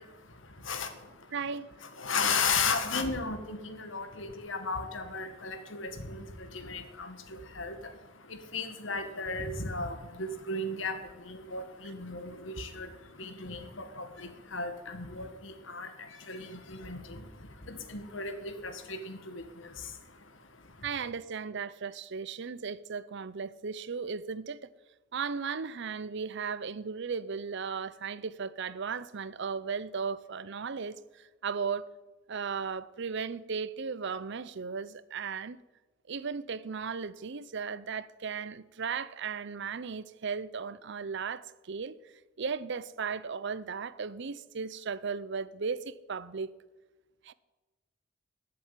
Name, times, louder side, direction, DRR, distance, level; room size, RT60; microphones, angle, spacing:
voice 1, 0.0-21.1, left 4 dB, 70° left, 1.8 m, -36 dB
voice 2, 1.3-1.7 20.8-24.7 25.1-31.0 31.4-31.9 32.3-35.6 36.1-41.9 42.4-46.5 47.3-47.4, right 5 dB, 65° right, 0.6 m, -36 dB
14.0 x 7.7 x 9.0 m
head